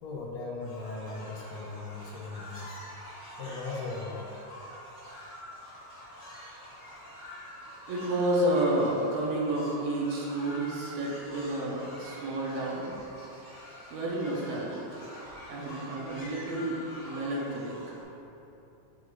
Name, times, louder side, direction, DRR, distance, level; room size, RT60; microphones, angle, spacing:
voice 1, 0.0-2.8 3.4-4.3 15.5-15.6, left 3 dB, 75° left, -3 dB, 1.7 m, -38 dB
sound 1, 0.6-18.0, equal, 35° left, 0.9 m, -46 dB
voice 2, 7.9-12.9 13.9-15.0 15.5-17.8, right 1 dB, 75° right, -4 dB, 2.0 m, -30 dB
8.1 x 4.7 x 2.5 m, 2.9 s
omnidirectional pair, 3.3 m